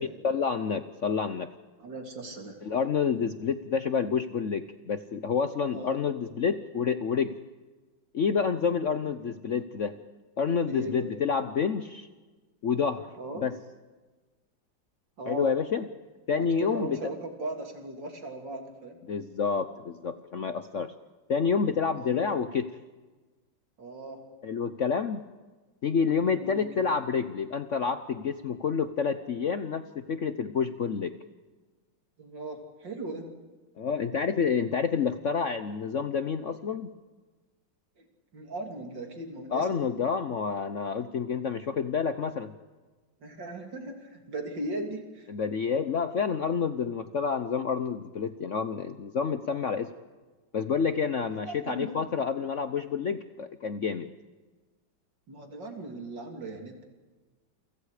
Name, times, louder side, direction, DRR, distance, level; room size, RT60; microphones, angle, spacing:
voice 1, 0.0-1.5 2.6-7.3 8.1-10.0 10.4-12.1 12.6-13.1 13.4-13.5 15.2-15.8 16.3-17.0 19.1-20.9 21.3-22.7 24.4-25.2 25.8-31.1 33.8-36.9 39.5-42.5 45.3-49.9 50.5-54.1, left 6 dB, 55° left, 10 dB, 0.9 m, -28 dB
voice 2, 1.8-2.6 5.7-6.0 10.7-11.1 13.2-13.5 15.2-15.6 16.6-19.0 22.0-22.4 23.8-24.3 26.3-26.9 32.2-33.3 38.0-38.1 38.3-39.7 43.2-45.3 51.3-51.9 55.3-56.8, right 1 dB, 65° right, 3 dB, 3.7 m, -38 dB
29.0 x 24.5 x 5.0 m, 1.3 s
omnidirectional pair, 2.1 m